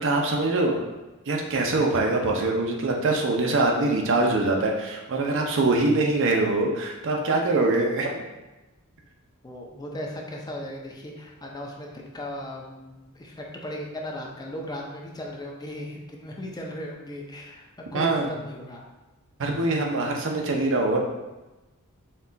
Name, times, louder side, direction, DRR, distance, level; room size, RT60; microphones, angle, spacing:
voice 1, 0.0-0.8 1.3-8.2 17.9-18.3 19.4-21.0, right 2 dB, 60° right, 1 dB, 0.6 m, -23 dB
voice 2, 9.4-17.7 17.9-18.8, equal, 20° left, -1 dB, 0.6 m, -37 dB
4.3 x 2.4 x 3.9 m, 1.1 s
head